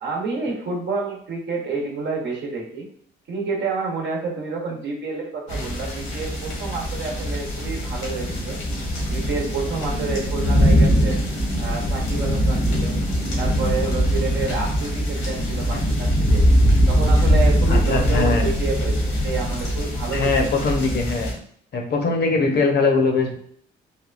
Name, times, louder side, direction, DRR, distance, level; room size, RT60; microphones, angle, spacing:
voice 1, 0.0-2.9 3.3-8.6 9.1-11.2 11.6-13.0 13.4-16.4 16.9-20.6, right 4 dB, 60° right, 0 dB, 0.9 m, -29 dB
sound 1, 5.5-21.3, equal, 90° left, 1.2 m, -21 dB
voice 2, 17.7-18.5 20.1-21.3 21.7-23.4, left 3 dB, 60° left, 2 dB, 0.7 m, -21 dB
3.5 x 2.2 x 2.4 m, 0.62 s
cardioid pair, 90°, 20 cm